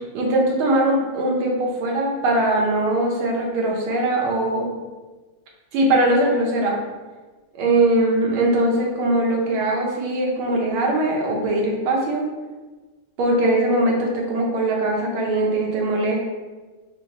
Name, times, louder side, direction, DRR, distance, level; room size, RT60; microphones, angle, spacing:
voice 1, 0.0-4.7 5.7-6.8 7.5-12.2 13.2-16.2, right 1 dB, 85° right, -1 dB, 1.7 m, -21 dB
4.0 x 2.9 x 3.8 m, 1.3 s
omnidirectional pair, 2.2 m